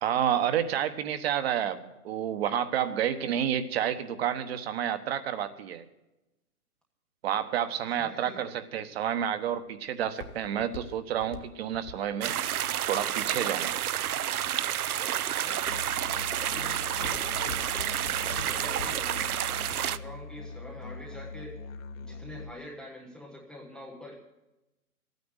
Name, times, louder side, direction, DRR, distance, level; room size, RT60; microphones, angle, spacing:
voice 1, 0.0-5.9 7.2-12.3 12.9-13.7, right 9 dB, 45° right, 10 dB, 1.2 m, -30 dB
voice 2, 7.9-8.4 13.6-13.7 15.3-15.7 16.2-17.7 18.1-19.4 19.7-21.6 22.0-24.1, left 1 dB, ahead, -3 dB, 0.5 m, -46 dB
Walk footsteps, 8.9-14.0 14.6-15.1 15.6-16.0 16.3-19.2 19.5-19.6, left 6 dB, 40° left, 1.3 m, -44 dB
sound 1, 12.2-20.0, right 11 dB, 75° right, 0.7 m, -30 dB
Musical instrument, 15.6-22.5, left 3 dB, 60° left, 1.3 m, -42 dB
13.0 x 9.5 x 7.9 m, 0.97 s
hypercardioid pair, 145°, 45 cm